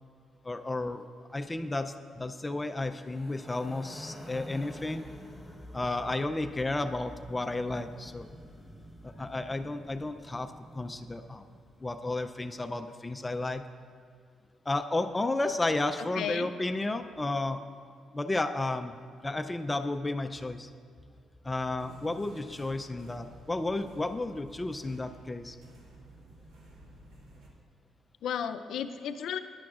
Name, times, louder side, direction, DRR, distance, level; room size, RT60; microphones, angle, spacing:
voice 1, 0.4-1.0 1.3-5.0 5.7-8.3 9.0-11.4 11.8-13.6 14.7-17.6 18.1-19.0 19.2-20.7 21.4-25.6, left 2 dB, 20° left, 8 dB, 0.4 m, -32 dB
sound 1, 2.9-12.2, equal, ahead, 1.1 m, -48 dB
voice 2, 16.0-16.5 28.2-29.4, left 8 dB, 75° left, 9 dB, 0.5 m, -34 dB
sound 2, 21.8-27.5, right 1 dB, 80° right, 1.9 m, -53 dB
15.0 x 10.5 x 2.4 m, 2.1 s
cardioid pair, 90°, 0 cm